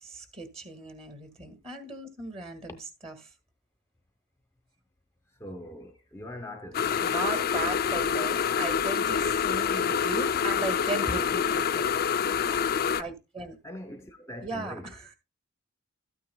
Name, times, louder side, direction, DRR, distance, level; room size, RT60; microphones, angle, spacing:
voice 1, 0.0-3.3 7.0-11.9 13.0-13.6 14.4-15.1, right 3 dB, 30° right, 1.8 m, -37 dB
voice 2, 5.4-7.0 13.6-14.9, left 1 dB, 10° left, 0.8 m, -42 dB
sound 1, 6.7-13.0, left 7 dB, 45° left, 0.4 m, -27 dB
12.5 x 9.3 x 2.2 m
head